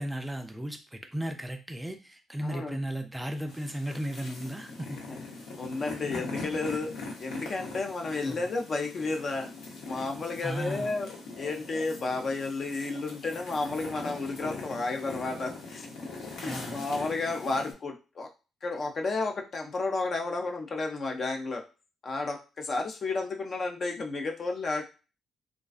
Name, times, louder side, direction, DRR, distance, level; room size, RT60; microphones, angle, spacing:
voice 1, 0.0-5.0 8.2-8.4 10.4-10.9 16.4-16.9, equal, 10° right, 6 dB, 0.4 m, -35 dB
voice 2, 2.4-2.8 5.1-5.2 5.6-6.9 7.2-9.5 9.8-11.1 11.4-15.9 16.4-18.3 18.6-21.6 22.0-24.8, left 3 dB, 50° left, 3 dB, 0.5 m, -32 dB
sound 1, 3.5-17.7, left 3 dB, 85° left, 0.8 m, -41 dB
2.4 x 2.2 x 2.4 m, 0.32 s
cardioid pair, 90°, 0 cm